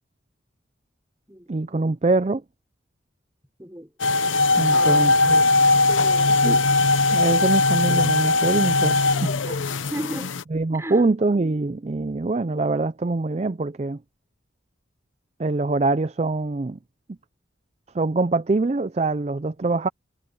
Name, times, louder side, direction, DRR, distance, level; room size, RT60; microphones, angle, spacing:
voice 1, 1.5-2.4 4.6-5.4 6.4-6.7 7.1-9.3 10.5-14.0 15.4-16.8 17.9-19.9, right 3 dB, 35° right, 0.4 m, -24 dB
voice 2, 3.6-3.9 4.7-5.1 5.9-6.4 9.1-9.6 9.9-10.4 10.7-11.1, right 1 dB, 15° right, 4.7 m, -35 dB
sound 1, 4.0-10.4, left 3 dB, 85° left, 0.8 m, -19 dB
head